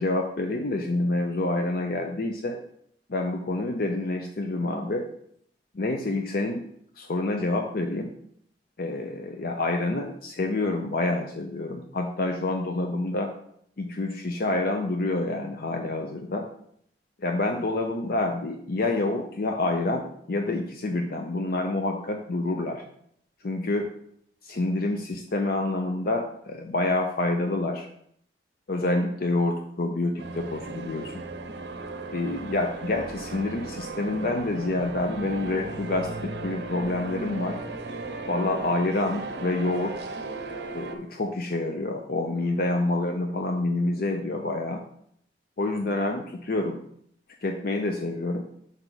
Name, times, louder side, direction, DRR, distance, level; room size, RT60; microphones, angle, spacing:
voice 1, 0.0-2.6 3.1-5.1 5.7-6.6 7.0-8.1 8.8-13.3 13.8-16.5 17.2-22.8 23.4-23.9 24.4-27.9 28.7-31.2 32.1-37.6 38.3-40.0 40.7-44.8 45.6-46.8 47.4-48.4, left 2 dB, 55° left, 3 dB, 0.6 m, -27 dB
sound 1, 30.2-41.0, right 3 dB, 70° right, 0.7 m, -36 dB
6.0 x 5.5 x 3.9 m, 0.67 s
head